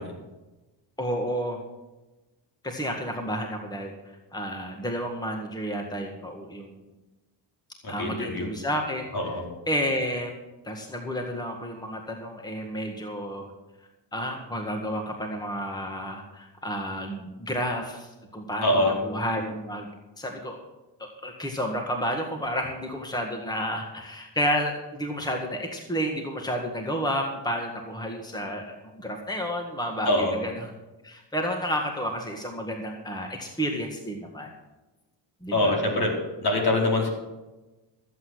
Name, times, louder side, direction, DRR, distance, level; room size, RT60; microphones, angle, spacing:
voice 1, 1.0-1.6 2.6-3.9 4.3-6.7 7.9-9.1 9.7-10.3 10.6-13.5 14.1-19.9 20.2-20.6 21.0-30.7 31.0-34.5 35.4-35.8, equal, 10° left, 2 dB, 1.8 m, -31 dB
voice 2, 7.8-8.5 9.1-9.4 18.6-18.9 30.0-30.3 35.5-36.1 36.4-37.1, left 1 dB, 55° left, -1 dB, 4.5 m, -24 dB
14.0 x 8.4 x 6.3 m, 1.1 s
cardioid pair, 80°, 46 cm